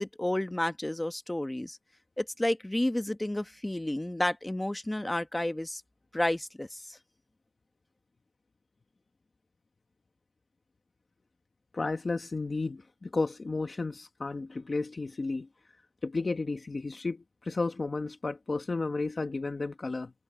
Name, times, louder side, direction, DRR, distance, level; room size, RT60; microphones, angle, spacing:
voice 1, 0.0-1.8 2.2-5.8 6.1-7.0, left 1 dB, 25° left, 1.0 m, -31 dB
voice 2, 11.7-15.5 16.0-20.1, left 3 dB, 80° left, 1.2 m, -33 dB
wide cardioid pair, 60°, 0 cm